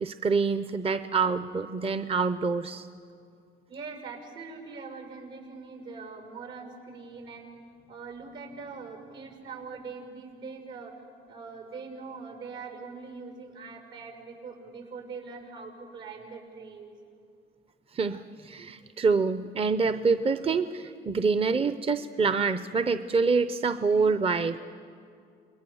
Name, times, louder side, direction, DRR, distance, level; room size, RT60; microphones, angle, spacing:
voice 1, 0.0-2.9 17.9-24.6, right 4 dB, 30° right, 11 dB, 0.7 m, -26 dB
voice 2, 3.7-7.6 7.9-10.9 11.3-16.9, right 4 dB, 75° right, 3 dB, 6.5 m, -42 dB
28.5 x 21.5 x 7.1 m, 2.4 s
cardioid pair, 90°, 20 cm